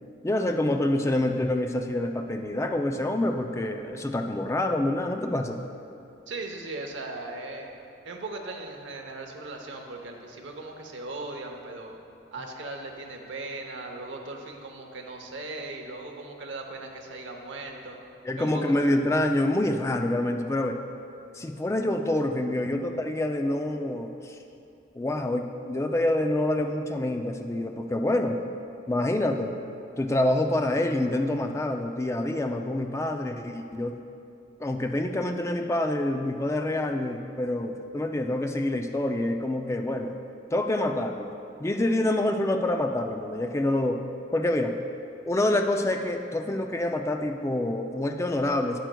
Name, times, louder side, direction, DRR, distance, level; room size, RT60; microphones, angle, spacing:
voice 1, 0.2-5.6 18.3-20.8 21.3-24.4 24.9-28.4 28.9-29.5 30.0-34.0 34.6-40.1 40.5-41.3 41.6-44.0 44.3-44.7 45.3-48.8, left 1 dB, 15° left, 5 dB, 0.3 m, -27 dB
voice 2, 6.3-7.7 8.0-11.9 12.3-18.0 18.4-18.7, right 2 dB, 80° right, 2 dB, 0.8 m, -38 dB
9.0 x 8.9 x 2.2 m, 2.6 s
head